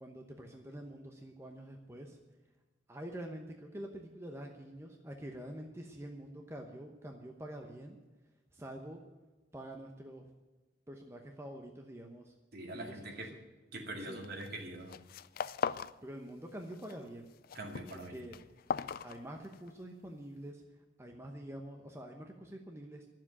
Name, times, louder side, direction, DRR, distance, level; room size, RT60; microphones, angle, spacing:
voice 1, 0.0-2.2 2.9-8.0 8.5-9.0 9.5-10.3 10.9-12.3 12.7-13.0 14.1-14.2 15.7-17.3 17.9-18.4 19.0-20.6 21.0-23.1, right 1 dB, 15° right, 2 dB, 1.0 m, -46 dB
voice 2, 12.5-13.3 13.7-15.0 17.5-18.2, right 1 dB, 55° right, 2 dB, 2.3 m, -43 dB
sound 1, 14.2-14.6 14.8-16.0 16.3-16.9 17.3-19.7, left 6 dB, 50° left, 0.4 m, -39 dB
11.5 x 7.5 x 9.7 m, 1.2 s
head